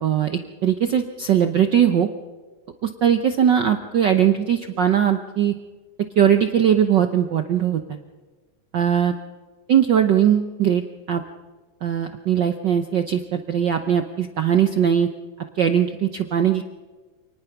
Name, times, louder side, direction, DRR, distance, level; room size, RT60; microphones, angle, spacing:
voice 1, 0.0-2.1 2.8-5.5 6.2-8.0 8.7-9.1 9.7-10.8 11.1-11.2 11.8-15.1 15.5-16.6, right 9 dB, 80° right, 7 dB, 1.0 m, -20 dB
28.0 x 19.5 x 5.9 m, 1.3 s
omnidirectional pair, 3.4 m